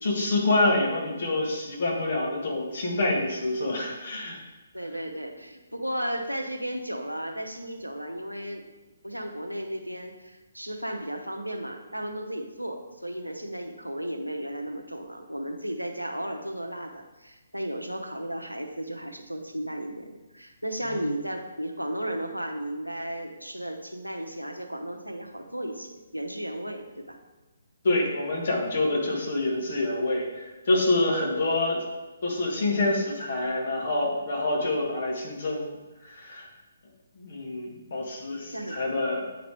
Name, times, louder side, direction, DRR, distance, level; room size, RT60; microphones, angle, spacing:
voice 1, 0.0-4.4 20.8-21.0 27.8-31.8 32.2-36.5 37.1-39.3, left 2 dB, 50° left, 0 dB, 1.6 m, -27 dB
voice 2, 4.7-8.7 9.0-27.2 38.3-38.8, right 1 dB, 90° right, 4 dB, 0.8 m, -34 dB
9.2 x 3.9 x 3.4 m, 1.1 s
figure-of-eight pair, 135°, 0 cm